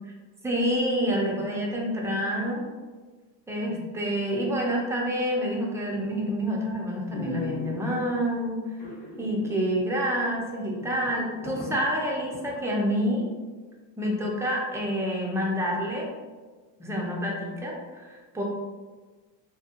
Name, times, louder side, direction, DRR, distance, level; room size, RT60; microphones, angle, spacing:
voice 1, 0.4-2.6 3.5-8.6 9.2-13.3 14.0-16.1 16.8-18.4, equal, 5° right, -2 dB, 0.6 m, -28 dB
sound 1, 5.9-6.3 6.7-6.8 7.1-8.2 8.8-9.5 9.8-9.9 10.4-10.5 10.7-12.6 13.0-13.1, equal, 45° left, 1.0 m, -37 dB
2.7 x 2.3 x 2.9 m, 1.3 s
supercardioid pair, 85°, 49 cm